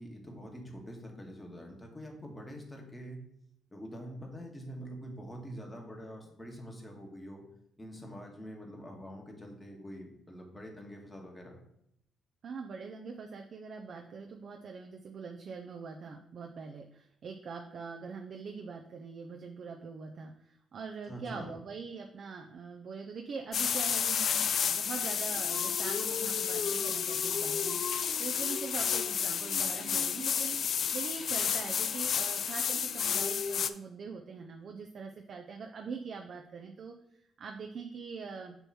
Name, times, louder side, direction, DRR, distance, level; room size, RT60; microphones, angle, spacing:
voice 1, 0.0-3.2 3.7-7.4 7.8-11.6 21.1-21.6, equal, 15° left, 0 dB, 1.6 m, -45 dB
voice 2, 12.4-30.6 30.9-36.9 37.4-38.6, right 5 dB, 55° right, 3 dB, 0.6 m, -43 dB
sound 1, 23.5-33.7, left 7 dB, 60° left, 0.3 m, -31 dB
sound 2, 24.3-32.9, left 2 dB, 35° left, 1.2 m, -50 dB
7.0 x 3.0 x 5.5 m, 0.74 s
cardioid pair, 90°, 0 cm